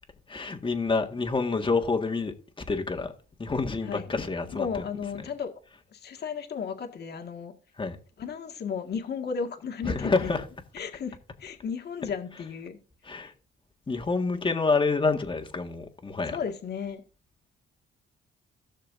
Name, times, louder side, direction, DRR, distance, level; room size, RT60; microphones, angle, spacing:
voice 1, 0.3-2.3 2.7-3.1 3.4-4.8 5.2-5.3 7.8-8.0 9.8-10.4 13.0-13.3 13.9-16.4, left 4 dB, 25° left, 1.8 m, -27 dB
voice 2, 4.5-5.5 5.9-7.5 8.2-10.4 10.7-12.8 13.1-13.3 16.3-17.0, left 6 dB, 55° left, 1.8 m, -34 dB
16.5 x 6.6 x 2.7 m
cardioid pair, 90°, 20 cm